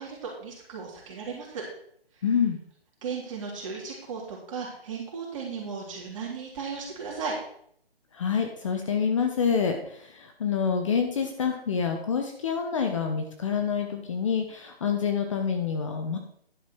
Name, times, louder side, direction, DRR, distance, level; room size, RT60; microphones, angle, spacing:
voice 1, 0.0-1.6 3.0-7.4, right 5 dB, 30° right, -2 dB, 3.5 m, -36 dB
voice 2, 2.2-2.6 8.1-16.2, left 6 dB, 30° left, 4 dB, 1.0 m, -27 dB
11.0 x 5.3 x 6.1 m, 0.66 s
figure-of-eight pair, 155°, 31 cm